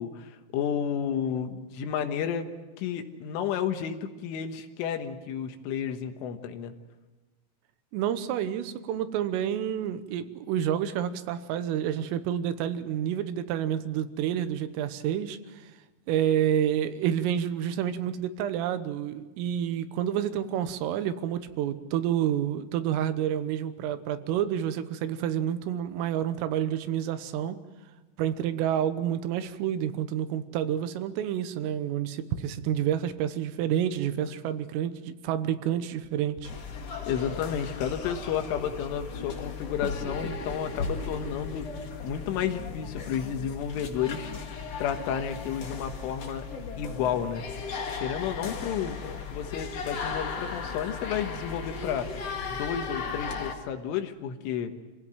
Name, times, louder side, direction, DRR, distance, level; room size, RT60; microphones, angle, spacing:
voice 1, 0.0-2.5 2.8-6.7 37.1-41.7 42.0-44.3 44.8-46.5 46.8-47.4 48.0-49.0 49.3-52.1 52.5-54.7, left 8 dB, 80° left, 7 dB, 3.8 m, -31 dB
voice 2, 7.9-15.4 16.1-27.6 28.2-36.5, right 10 dB, 85° right, 11 dB, 3.7 m, -29 dB
sound 1, 36.4-53.5, left 5 dB, 50° left, 1.9 m, -36 dB
26.5 x 16.5 x 9.0 m, 1.2 s
omnidirectional pair, 5.7 m